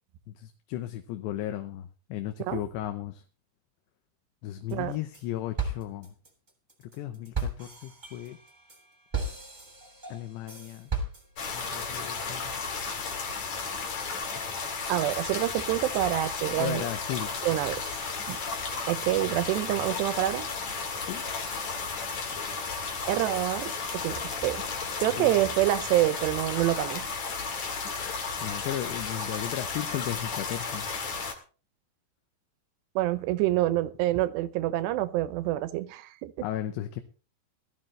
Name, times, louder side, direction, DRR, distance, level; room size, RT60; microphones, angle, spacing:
voice 1, 0.4-3.2 4.4-6.1 6.9-8.4 10.1-10.9 11.5-12.5 16.6-17.4 21.1-21.2 24.1-24.3 25.2-25.4 28.4-30.9 36.4-37.0, left 12 dB, 80° left, 3.1 m, -35 dB
sound 1, 4.7-5.2 5.6-11.6, right 4 dB, 15° right, 2.1 m, -35 dB
sound 2, 11.4-31.3, left 4 dB, 50° left, 2.6 m, -34 dB
voice 2, 14.9-16.8 17.4-17.8 18.3-18.4 18.9-20.5 23.1-24.6 25.0-27.0 33.0-36.5, right 15 dB, 80° right, 2.9 m, -27 dB
18.0 x 13.5 x 3.2 m
omnidirectional pair, 5.0 m